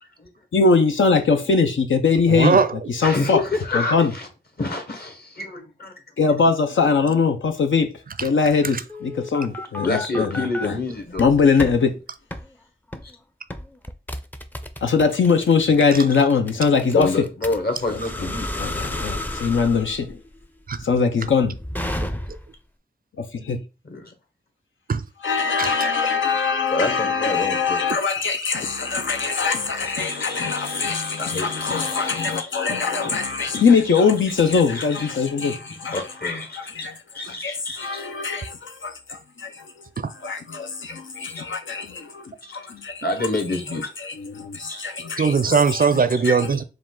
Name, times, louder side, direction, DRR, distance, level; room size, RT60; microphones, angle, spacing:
voice 1, 0.5-2.6 2.9-3.4 3.7-4.1 6.2-7.9 8.2-10.7 11.2-12.0 14.8-17.1 18.6-20.2 20.8-21.6 23.2-23.6 25.2-36.0 36.8-36.9 37.3-39.8 40.2-43.0 44.0-45.6 46.2-46.6, left 5 dB, 75° left, 0.6 m, -21 dB
voice 2, 2.3-2.9 8.2-8.3 8.7-8.8 20.7-20.8 22.3-22.4 24.9-25.0 25.6-25.8 40.0-40.1 45.2-46.6, right 5 dB, 45° right, 0.5 m, -20 dB
voice 3, 3.0-4.3 4.6-5.9 9.8-11.2 16.9-18.5 23.8-24.1 26.7-27.8 29.7-32.6 33.0-34.0 34.7-35.1 35.9-38.1 42.5-42.6 43.0-43.9 44.7-44.8, left 2 dB, 50° left, 1.3 m, -28 dB
sound 1, 8.9-10.7 11.1-11.8 12.3-12.5 12.9-13.1 13.5-22.6, left 1 dB, 10° left, 0.5 m, -32 dB
4.8 x 2.4 x 3.7 m
cardioid pair, 45°, 20 cm